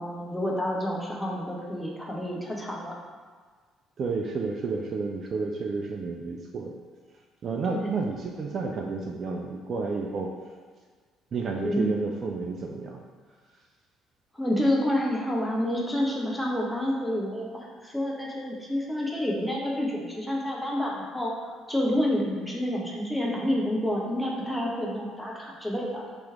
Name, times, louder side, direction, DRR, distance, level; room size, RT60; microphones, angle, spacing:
voice 1, 0.0-3.0 7.7-7.9 11.6-11.9 14.3-21.3 21.7-26.0, left 1 dB, 5° left, -3 dB, 0.9 m, -28 dB
voice 2, 4.0-6.7 7.4-10.3 11.3-13.0, right 4 dB, 45° right, 0 dB, 0.3 m, -31 dB
3.0 x 3.0 x 3.5 m, 1.6 s
figure-of-eight pair, 50°, 0 cm